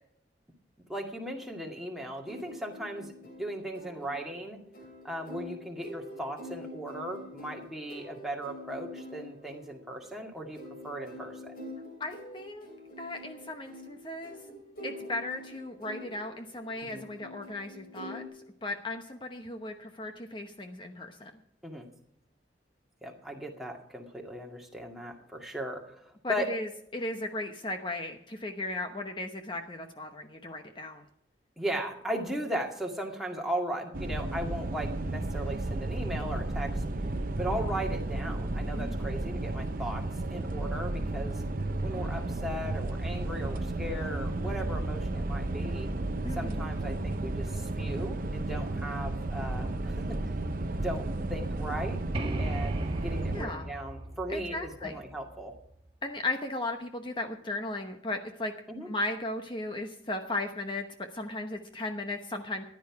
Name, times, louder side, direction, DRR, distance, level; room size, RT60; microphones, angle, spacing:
voice 1, 0.9-3.1 3.4-4.6 5.0-11.5 16.9-17.0 21.6-21.9 23.0-26.5 31.6-36.8 37.4-40.0 40.3-41.4 41.8-45.9 46.3-50.3 50.8-52.0 52.4-55.5 58.7-58.9, right 1 dB, ahead, 0 dB, 2.1 m, -37 dB
sound 1, 2.3-18.3, left 1 dB, 50° left, 3.4 m, -46 dB
voice 2, 12.0-12.7 13.0-14.4 14.8-18.2 18.6-21.3 26.2-31.0 38.8-39.0 46.2-46.7 53.3-53.7 54.3-54.9 56.0-58.5 58.8-60.9 61.1-62.6, left 2 dB, 25° left, 5 dB, 1.0 m, -36 dB
sound 2, 33.9-53.5, right 2 dB, 50° right, 0.7 m, -33 dB
sound 3, 52.1-55.8, right 1 dB, 30° right, 1.8 m, -37 dB
15.0 x 10.5 x 4.8 m, 0.72 s
head